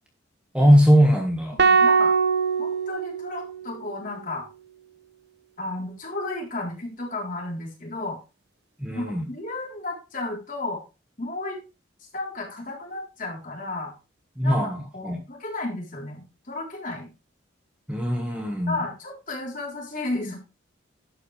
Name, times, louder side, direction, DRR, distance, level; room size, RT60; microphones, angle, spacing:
voice 1, 0.5-1.6 8.8-9.3 14.4-15.2 17.9-18.8, equal, 5° right, 1 dB, 1.7 m, -20 dB
voice 2, 1.5-2.1 2.6-4.5 5.6-8.2 8.9-10.8 11.2-11.6 12.1-13.9 14.4-17.1 18.7-20.4, left 2 dB, 40° left, -1 dB, 3.9 m, -33 dB
sound 1, 1.6-3.9, right 5 dB, 55° right, 0.9 m, -22 dB
11.5 x 8.6 x 3.4 m, 0.29 s
head